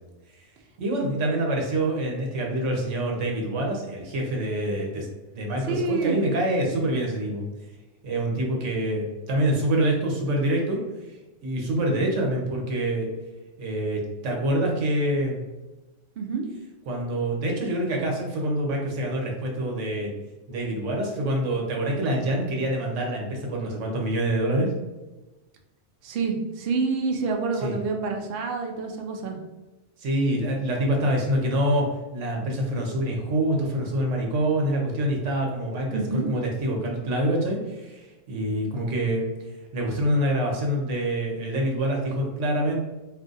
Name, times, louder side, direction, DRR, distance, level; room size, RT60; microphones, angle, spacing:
voice 1, 0.8-5.1 5.3-7.5 8.0-13.1 13.6-15.4 16.9-20.1 20.5-24.7 27.5-27.7 30.0-39.3 39.7-42.8, right 1 dB, 85° right, 0 dB, 1.1 m, -26 dB
voice 2, 5.7-6.2 16.2-16.5 26.0-29.4 35.9-36.3, right 4 dB, 65° right, 3 dB, 0.7 m, -27 dB
2.5 x 2.4 x 3.8 m, 1.1 s
omnidirectional pair, 1.2 m